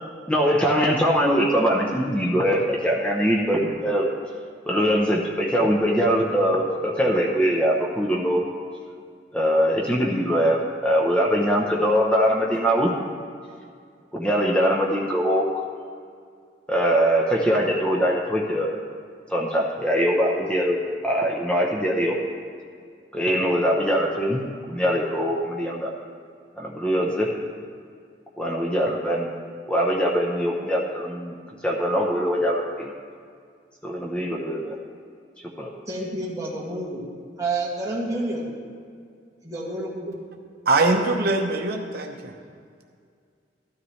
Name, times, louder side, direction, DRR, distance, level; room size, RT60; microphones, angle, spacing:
voice 1, 0.3-4.1 4.7-8.4 9.3-12.9 14.1-15.6 16.7-18.8 19.3-20.8 21.0-22.2 23.1-24.4 24.7-25.9 26.6-27.3 28.4-29.4 29.7-31.3 31.6-32.9 33.8-34.7 35.6-35.7, equal, 5° left, -2 dB, 0.8 m, -22 dB
voice 2, 35.9-37.0 37.4-38.5 39.4-40.2, right 2 dB, 20° right, -5 dB, 2.1 m, -29 dB
voice 3, 40.7-42.3, right 2 dB, 60° right, 2 dB, 0.8 m, -22 dB
13.0 x 13.0 x 3.2 m, 2.2 s
head